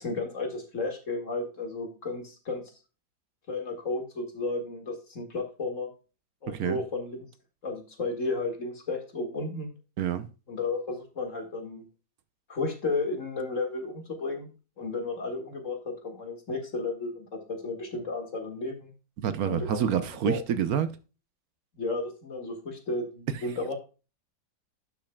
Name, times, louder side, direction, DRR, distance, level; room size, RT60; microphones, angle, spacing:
voice 1, 0.0-2.6 3.5-5.9 6.4-7.3 7.6-9.7 10.5-11.8 12.5-18.9 19.4-20.4 21.7-23.7, left 3 dB, 45° left, 2.2 m, -33 dB
voice 2, 6.5-6.8 10.0-10.3 19.2-20.9, right 8 dB, 65° right, 1.1 m, -27 dB
11.5 x 6.5 x 2.2 m
omnidirectional pair, 1.9 m